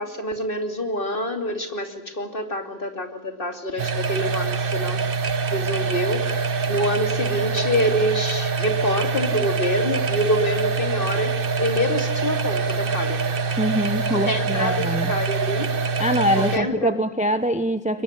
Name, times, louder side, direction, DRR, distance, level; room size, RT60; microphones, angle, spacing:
voice 1, 0.0-5.0 5.5-13.2 14.1-15.7 16.3-16.9, equal, 40° left, 6 dB, 3.0 m, -26 dB
sound 1, 3.8-16.6, right 4 dB, 45° right, 1.2 m, -25 dB
voice 2, 13.6-15.1 16.0-18.0, equal, 5° right, 11 dB, 1.0 m, -23 dB
23.5 x 21.5 x 9.7 m, 1.0 s
omnidirectional pair, 1.4 m